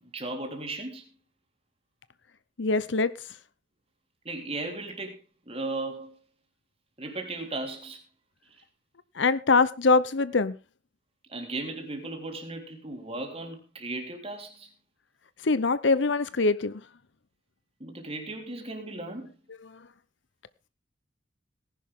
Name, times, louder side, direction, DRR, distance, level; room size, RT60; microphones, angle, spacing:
voice 1, 0.1-1.1 4.3-5.2 5.5-6.1 7.0-8.0 11.3-14.7 17.8-19.3, right 2 dB, 30° right, 3.6 m, -36 dB
voice 2, 2.6-3.1 9.2-10.5 15.4-16.7 19.7-19.8, left 3 dB, 70° left, 0.8 m, -23 dB
18.5 x 11.0 x 3.7 m
head